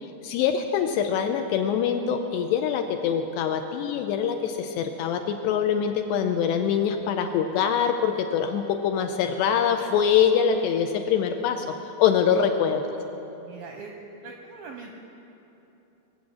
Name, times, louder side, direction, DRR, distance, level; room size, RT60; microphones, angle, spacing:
voice 1, 0.0-12.8, left 8 dB, 80° left, 5 dB, 2.6 m, -24 dB
voice 2, 13.4-13.9 14.2-14.9, right 5 dB, 80° right, 2 dB, 2.1 m, -41 dB
23.5 x 7.9 x 7.5 m, 2.9 s
omnidirectional pair, 5.3 m